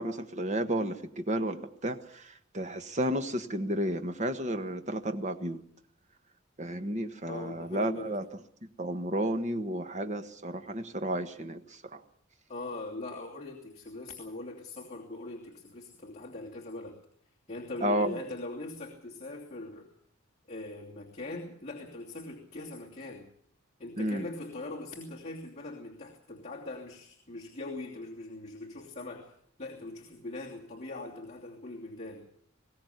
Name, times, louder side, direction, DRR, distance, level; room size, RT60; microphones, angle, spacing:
voice 1, 0.0-5.6 6.6-8.2 8.8-12.0 17.8-18.2 24.0-24.2, right 1 dB, 35° right, 8 dB, 1.4 m, -32 dB
voice 2, 7.3-8.1 12.5-17.0 17.5-19.9 20.5-23.3 23.8-29.3 29.6-32.3, left 2 dB, 35° left, -2 dB, 2.9 m, -41 dB
21.0 x 17.0 x 8.1 m, 0.67 s
head